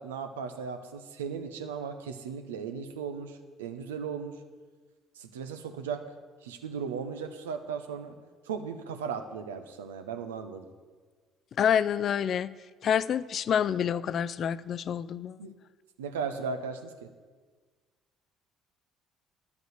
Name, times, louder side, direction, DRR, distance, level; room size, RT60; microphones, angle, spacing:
voice 1, 0.0-4.3 5.2-6.0 6.4-8.1 8.5-10.7 15.4-15.5 16.0-17.1, right 6 dB, 85° right, 8 dB, 0.7 m, -36 dB
voice 2, 11.6-12.5 12.8-15.4, left 8 dB, 55° left, 17 dB, 0.3 m, -27 dB
10.5 x 5.3 x 7.8 m, 1.4 s
hypercardioid pair, 55°, 0 cm